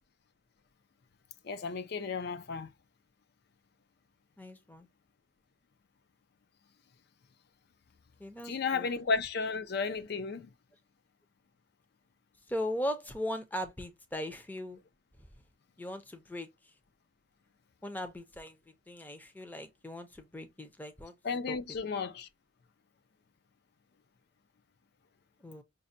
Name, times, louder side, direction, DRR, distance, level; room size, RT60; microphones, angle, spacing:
voice 1, 1.4-2.7 8.4-10.5 21.2-22.3, left 4 dB, 55° left, 0.5 m, -33 dB
voice 2, 4.4-4.9 8.2-8.9 12.5-14.8 15.8-16.5 17.8-18.6 18.9-21.1 21.5-21.6 25.4-25.6, equal, 10° left, 0.5 m, -38 dB
5.2 x 2.1 x 2.5 m
head